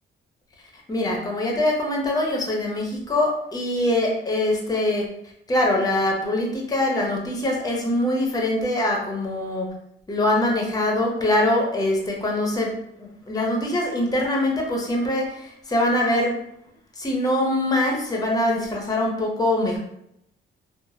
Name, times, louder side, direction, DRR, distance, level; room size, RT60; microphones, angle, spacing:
voice 1, 0.7-5.1 5.5-9.7 10.1-16.4 17.0-19.8, left 1 dB, 20° left, 0 dB, 0.7 m, -23 dB
3.2 x 2.0 x 2.7 m, 0.76 s
cardioid pair, 90°, 20 cm